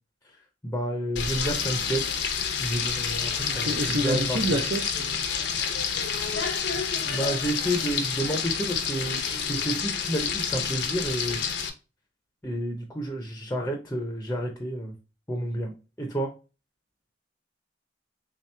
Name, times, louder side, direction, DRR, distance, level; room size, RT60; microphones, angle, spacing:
voice 1, 0.6-2.1 2.6-4.6 7.0-11.4 12.4-14.9 15.3-15.7 16.0-16.3, right 1 dB, 15° left, 2 dB, 0.6 m, -30 dB
Frying (food), 1.2-11.7, left 6 dB, 65° left, 0.6 m, -29 dB
voice 2, 3.4-5.3, right 1 dB, 65° right, 1 dB, 0.6 m, -28 dB
3.6 x 2.9 x 3.2 m, 0.31 s
head